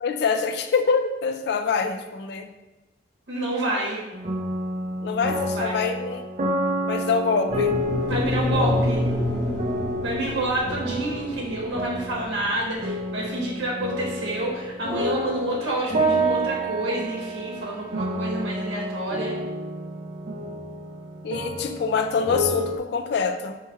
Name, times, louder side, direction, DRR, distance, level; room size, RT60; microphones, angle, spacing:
voice 1, 0.0-2.5 5.0-6.2 6.8-7.7 21.2-23.6, left 5 dB, 60° left, 7 dB, 0.3 m, -25 dB
voice 2, 3.3-4.0 5.3-5.8 8.0-9.0 10.0-19.4, right 1 dB, 75° right, -4 dB, 0.9 m, -28 dB
sound 1, 4.1-22.8, right 1 dB, 40° right, 0.4 m, -29 dB
sound 2, 7.5-15.7, left 1 dB, 10° left, 1.4 m, -29 dB
3.5 x 3.2 x 4.5 m, 1.1 s
head